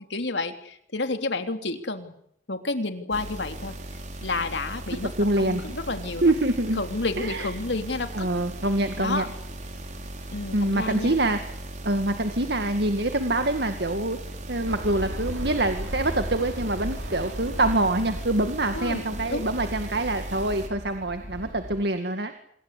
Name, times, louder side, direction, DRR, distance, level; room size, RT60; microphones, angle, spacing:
voice 1, 0.0-2.1 2.5-3.7 4.2-5.1 5.4-6.3 6.8-8.3 9.0-9.3 10.3-11.2 18.7-19.5, left 2 dB, 75° left, 7 dB, 3.3 m, -30 dB
sound 1, 3.1-20.7, right 1 dB, 40° right, 5.0 m, -38 dB
voice 2, 5.0-5.6 6.2-6.8 7.2-7.5 8.1-9.3 10.5-11.4 11.8-14.2 14.5-22.3, right 2 dB, 60° right, 7 dB, 2.1 m, -25 dB
sound 2, 14.7-21.8, equal, 90° right, 5.7 m, -36 dB
27.0 x 22.5 x 8.5 m, 0.69 s
head